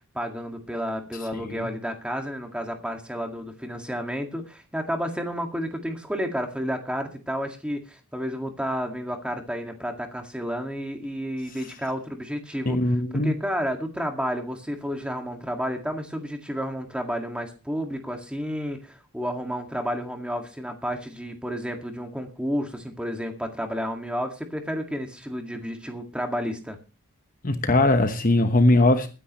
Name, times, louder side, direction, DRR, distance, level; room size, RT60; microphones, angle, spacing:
voice 1, 0.1-12.8 13.2-26.8, equal, 5° right, 4 dB, 2.0 m, -31 dB
voice 2, 1.3-1.7 12.6-13.4 27.4-29.1, left 2 dB, 40° left, 7 dB, 1.1 m, -20 dB
21.0 x 10.0 x 3.1 m, 0.33 s
head